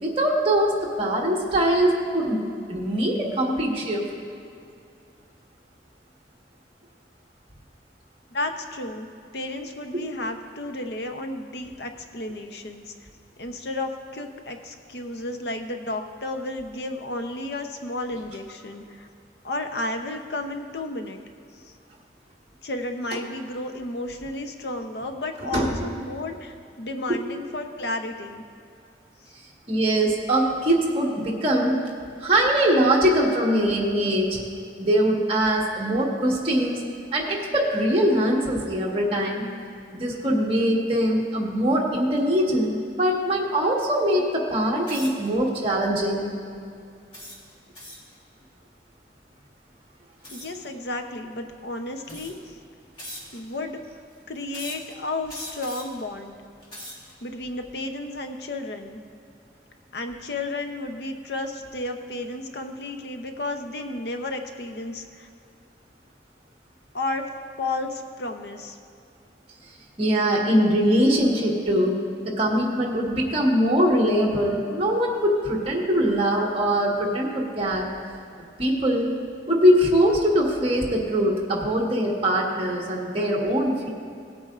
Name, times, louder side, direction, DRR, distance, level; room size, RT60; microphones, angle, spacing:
voice 1, 0.0-2.4 2.7-4.0 9.9-10.0 25.5-25.7 27.1-27.2 29.7-31.8 32.2-34.4 34.8-36.8 37.1-39.5 39.9-46.3 70.0-72.0 72.2-77.9 78.6-79.1 79.5-83.9, equal, 30° right, -2 dB, 1.4 m, -22 dB
voice 2, 8.3-9.1 9.3-12.9 13.4-19.1 19.4-21.2 21.5-21.7 22.6-28.4 50.3-52.6 53.3-53.8 54.3-56.4 57.2-59.0 59.9-65.3 66.9-67.3 67.6-68.8, left 2 dB, 70° left, 6 dB, 0.7 m, -32 dB
sound 1, 44.8-45.3 45.9-46.2 47.1-48.1 50.2-50.6 51.5-51.6 52.0-52.5 53.0-53.6 54.5-54.9 55.3-56.0 56.5-57.1, left 1 dB, 30° left, 2.0 m, -40 dB
18.0 x 8.5 x 2.5 m, 2.5 s
head